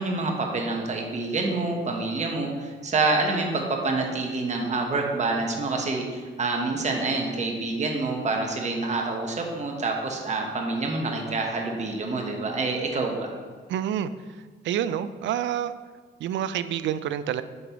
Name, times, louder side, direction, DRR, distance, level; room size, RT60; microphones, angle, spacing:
voice 1, 0.0-13.3, right 3 dB, 35° right, 1 dB, 1.1 m, -27 dB
voice 2, 13.7-14.1 14.6-15.7 16.2-17.4, right 10 dB, 70° right, 13 dB, 0.4 m, -27 dB
7.8 x 5.3 x 3.0 m, 1.5 s
cardioid pair, 90°, 20 cm